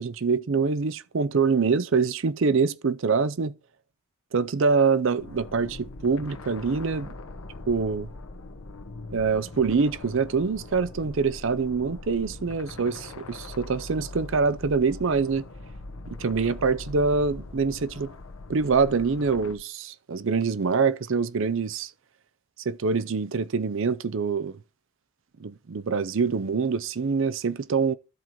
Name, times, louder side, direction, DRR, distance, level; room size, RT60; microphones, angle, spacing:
voice 1, 0.0-3.5 4.3-7.1 7.7-8.1 9.1-15.4 16.1-18.1 18.5-21.9 22.7-24.6 25.4-27.9, right 5 dB, 60° right, 0.5 m, -25 dB
sound 1, 5.2-19.5, left 2 dB, 75° left, 1.0 m, -41 dB
13.0 x 4.5 x 4.2 m
head